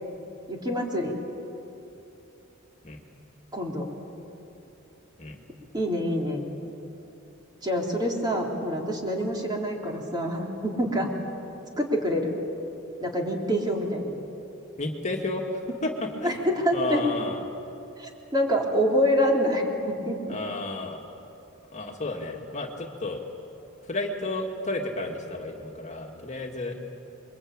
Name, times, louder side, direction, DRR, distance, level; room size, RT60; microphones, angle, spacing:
voice 1, 0.5-1.2 3.5-3.9 5.7-6.4 7.6-11.1 11.8-12.3 13.0-14.2 16.2-17.0 18.0-20.4, equal, 20° right, 0 dB, 3.5 m, -26 dB
voice 2, 14.8-17.4 20.3-21.0 21.7-23.2 23.8-26.8, left 2 dB, 35° left, 0 dB, 2.2 m, -32 dB
28.5 x 23.5 x 8.9 m, 3.0 s
head